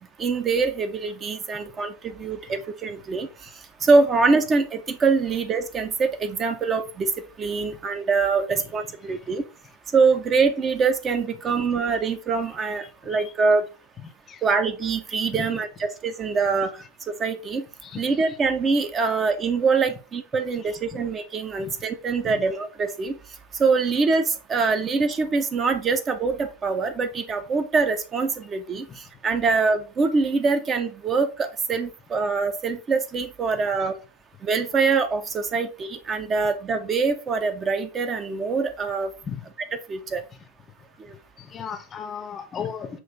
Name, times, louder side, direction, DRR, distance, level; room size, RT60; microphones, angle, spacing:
voice 1, 0.2-3.5 3.8-7.1 7.4-9.4 9.9-13.6 14.4-16.7 17.1-17.6 18.0-23.2 23.6-34.0 34.4-39.1 39.9-40.2, right 4 dB, 25° right, 0.5 m, -24 dB
voice 2, 12.8-13.3 14.0-14.4 15.3-15.6 17.8-18.4 20.6-21.0 21.6-21.7 22.2-22.4 28.9-29.0 33.6-33.9 39.2-39.5 41.4-43.0, left 7 dB, 25° left, 0.5 m, -38 dB
5.9 x 2.5 x 3.5 m
figure-of-eight pair, 90°, 0 cm